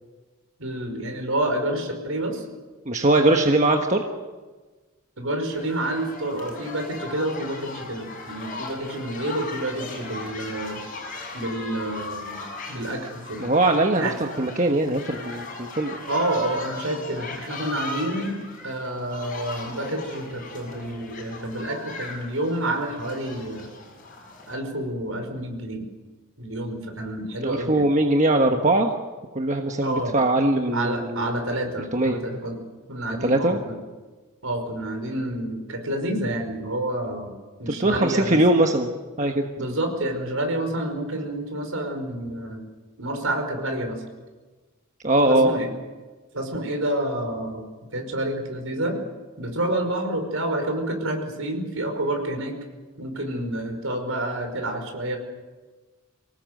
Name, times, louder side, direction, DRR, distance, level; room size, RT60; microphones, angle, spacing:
voice 1, 0.6-2.4 5.2-10.8 11.3-13.5 14.0-14.1 16.1-18.4 18.6-23.7 24.5-25.8 26.4-27.8 29.8-30.2 30.7-32.6 32.9-33.8 34.4-37.3 37.6-38.4 39.6-42.6 43.0-44.0 45.3-45.7 46.3-47.6 47.9-49.0 49.4-52.5 53.0-55.2, right 1 dB, 70° right, 4 dB, 5.2 m, -28 dB
voice 2, 2.8-4.0 13.4-16.0 27.4-28.9 29.3-31.4 31.9-32.2 33.2-33.6 37.7-38.9 39.2-39.5 45.0-45.6, right 2 dB, 35° right, 3 dB, 1.3 m, -21 dB
sound 1, 5.5-24.5, left 3 dB, 40° left, 6.8 m, -38 dB
25.0 x 19.0 x 7.8 m, 1.3 s
head